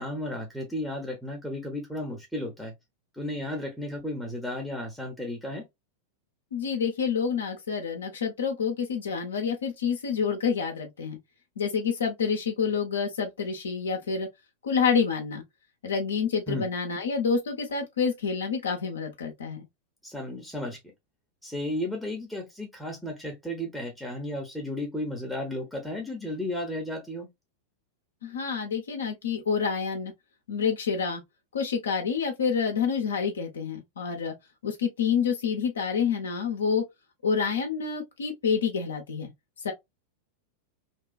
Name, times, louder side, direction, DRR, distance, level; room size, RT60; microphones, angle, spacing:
voice 1, 0.0-2.7 3.1-5.7 16.5-16.7 20.0-20.8 21.4-27.3, left 1 dB, ahead, 0.7 m, -34 dB
voice 2, 6.5-11.2 11.6-14.3 14.6-15.4 15.8-19.7 28.2-30.1 30.5-31.2 31.5-34.3 34.6-36.8 37.2-39.3 39.6-39.7, left 6 dB, 70° left, 0.5 m, -28 dB
2.7 x 2.2 x 2.3 m
figure-of-eight pair, 90°, 0 cm